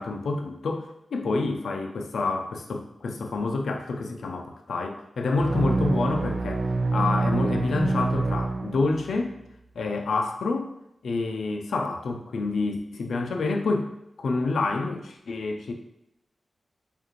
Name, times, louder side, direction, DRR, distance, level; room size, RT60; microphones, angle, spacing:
voice 1, 0.0-6.6 6.9-9.4 9.8-10.7 11.0-13.9 14.2-15.7, left 3 dB, 85° left, 4 dB, 0.5 m, -28 dB
sound 1, 5.4-9.2, right 3 dB, 60° right, 0.4 m, -26 dB
4.8 x 2.6 x 3.1 m, 0.81 s
wide cardioid pair, 90°, 0 cm